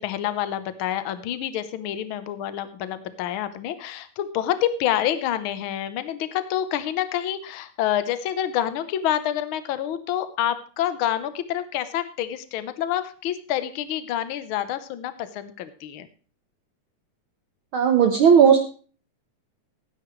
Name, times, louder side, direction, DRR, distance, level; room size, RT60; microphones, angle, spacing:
voice 1, 0.0-16.1, left 11 dB, 75° left, 12 dB, 1.1 m, -27 dB
voice 2, 17.7-18.6, right 7 dB, 70° right, 5 dB, 1.2 m, -15 dB
18.0 x 9.8 x 3.2 m, 0.39 s
omnidirectional pair, 3.6 m